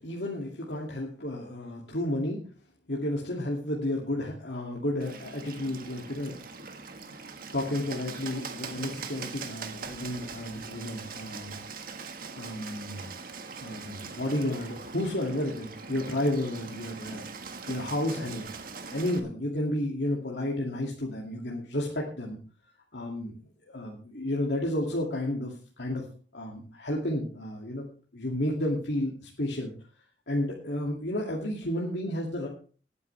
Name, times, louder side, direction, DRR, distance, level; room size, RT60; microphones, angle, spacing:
voice 1, 0.0-2.4 2.9-6.4 7.5-11.6 12.4-13.1 13.6-18.5 18.9-22.4 22.9-23.3 23.7-26.0 26.3-27.8 28.1-29.7 30.3-32.5, left 1 dB, 75° left, -2 dB, 2.4 m, -32 dB
Bird, 5.0-19.2, right 4 dB, 55° right, 1.6 m, -41 dB
19.5 x 9.6 x 3.3 m, 0.40 s
head